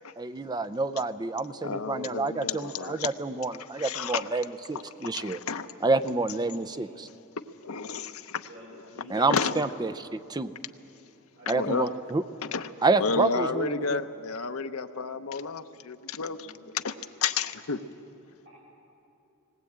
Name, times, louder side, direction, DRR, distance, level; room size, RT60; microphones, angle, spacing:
voice 1, 0.2-5.4 5.8-7.1 9.1-10.5 11.5-12.2 12.8-14.0, right 3 dB, 20° right, 12 dB, 0.5 m, -28 dB
voice 2, 1.6-3.1 3.8-4.3 5.0-5.7 7.6-8.5 9.3-9.6 11.5-11.9 12.4-12.7 13.0-16.5 16.8-16.9 17.2-17.8, left 5 dB, 70° left, 8 dB, 0.8 m, -31 dB
voice 3, 8.4-9.3 11.4-12.1 16.2-16.6, equal, 60° right, -8 dB, 6.7 m, -50 dB
19.5 x 19.0 x 8.7 m, 2.8 s
head